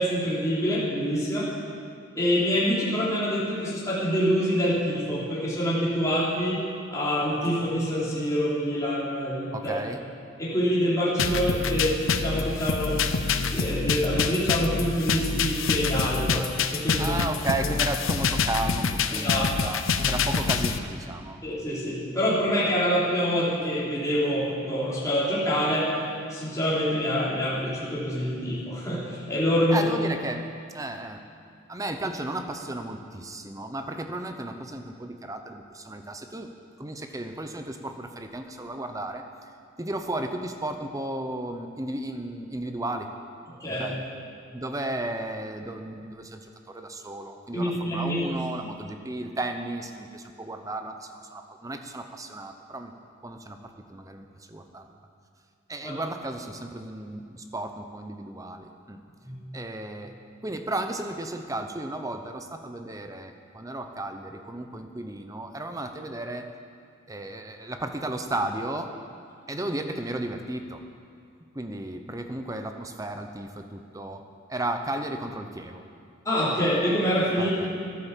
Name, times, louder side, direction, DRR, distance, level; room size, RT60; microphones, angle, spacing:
voice 1, 0.0-1.5 2.1-6.6 6.9-9.7 10.4-13.0 13.5-17.2 19.1-19.5 21.4-25.9 26.3-29.9 43.6-43.9 47.5-48.3 55.8-55.9 59.2-59.4 76.2-77.6, equal, 15° left, -8 dB, 3.4 m, -26 dB
voice 2, 9.5-10.0 17.0-21.4 29.7-30.5 30.7-31.2 31.7-36.5 36.8-39.2 39.8-43.1 43.7-44.0 44.5-52.9 53.2-54.8 55.7-59.0 59.5-60.2 60.4-66.5 67.1-68.9 69.5-70.8 71.5-74.2 74.5-75.8 77.4-77.7, right 1 dB, 15° right, 6 dB, 0.8 m, -34 dB
sound 1, 11.2-20.8, left 5 dB, 75° left, 0.7 m, -26 dB
13.5 x 10.5 x 7.3 m, 2.4 s
head